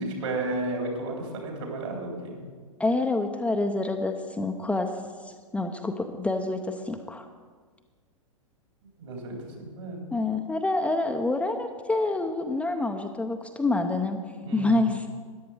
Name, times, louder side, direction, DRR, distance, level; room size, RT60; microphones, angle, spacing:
voice 1, 0.0-2.4 9.0-10.0 14.4-14.9, right 2 dB, 65° right, 0 dB, 3.7 m, -33 dB
voice 2, 2.8-4.9 5.2-7.3 10.1-14.2 14.5-15.1, left 2 dB, 5° left, 4 dB, 0.7 m, -27 dB
13.5 x 10.5 x 5.0 m, 1.5 s
figure-of-eight pair, 100°, 17 cm